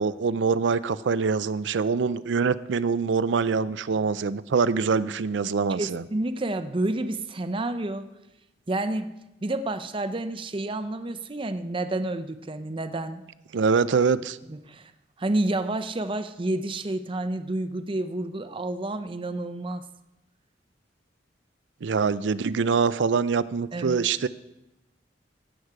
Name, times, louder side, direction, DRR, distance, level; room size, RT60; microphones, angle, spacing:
voice 1, 0.0-6.0 13.5-14.4 21.8-24.3, right 5 dB, 80° right, 16 dB, 0.5 m, -24 dB
voice 2, 5.7-8.1 8.7-9.1 9.4-13.2 14.5-14.9 15.2-19.8 23.7-24.0, right 2 dB, 30° right, 9 dB, 0.6 m, -29 dB
16.5 x 8.0 x 4.8 m, 0.95 s
head